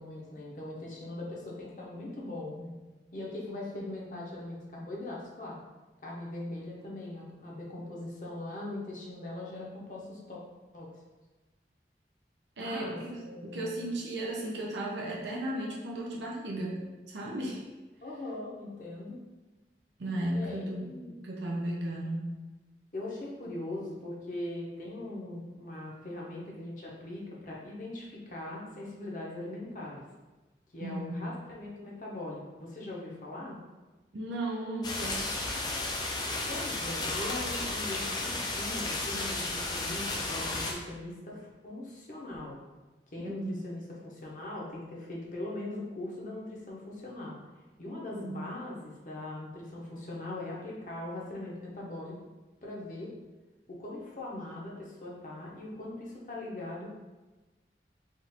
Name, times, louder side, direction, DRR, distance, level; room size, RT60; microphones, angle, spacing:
voice 1, 0.0-2.7 3.1-5.6 6.0-10.4 10.7-10.9 12.6-13.0 13.2-13.8 18.0-19.2 20.3-21.1 22.9-30.0 30.7-33.6 36.5-42.6 43.1-47.4 47.8-52.1 52.6-53.1 53.8-56.9, left 1 dB, 45° left, -3 dB, 0.8 m, -40 dB
voice 2, 12.6-16.8 17.1-17.6 20.0-20.9 21.2-22.3 30.8-31.2 34.1-35.2 43.2-43.6 48.1-48.5, right 1 dB, 90° right, -3 dB, 0.6 m, -35 dB
sound 1, 34.8-40.7, left 2 dB, 25° left, 0.4 m, -33 dB
3.7 x 2.4 x 4.2 m, 1.2 s
head